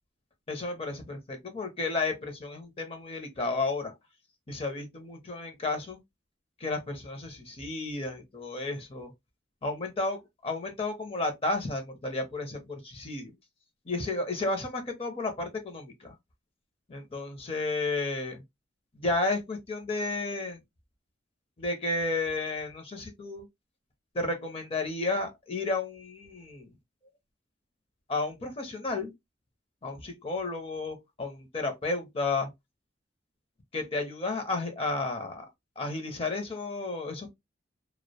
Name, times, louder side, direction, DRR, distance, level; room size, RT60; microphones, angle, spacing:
voice 1, 0.5-3.9 4.5-6.0 6.6-9.1 9.6-10.2 10.4-13.3 13.9-16.1 16.9-18.4 18.9-20.6 21.6-23.5 24.1-26.7 28.1-29.1 29.8-32.5 33.7-35.5 35.8-37.3, left 3 dB, 30° left, 0.5 m, -32 dB
2.3 x 2.0 x 2.7 m
head